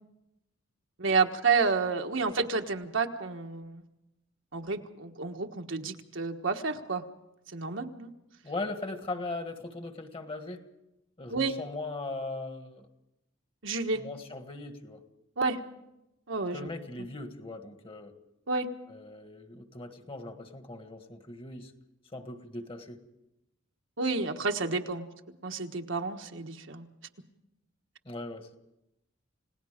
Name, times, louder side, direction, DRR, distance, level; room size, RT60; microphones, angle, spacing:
voice 1, 1.0-3.8 4.5-7.0 7.5-8.1 11.3-11.5 13.6-14.0 15.4-15.6 16.3-16.7 18.5-18.7 24.0-25.1 25.4-26.9, right 4 dB, 75° right, 4 dB, 1.4 m, -30 dB
voice 2, 8.4-10.6 11.2-12.9 13.9-15.0 16.5-18.1 18.9-21.7 22.1-23.0 28.1-28.6, left 2 dB, 30° left, 7 dB, 1.7 m, -39 dB
30.0 x 18.0 x 5.1 m, 0.88 s
head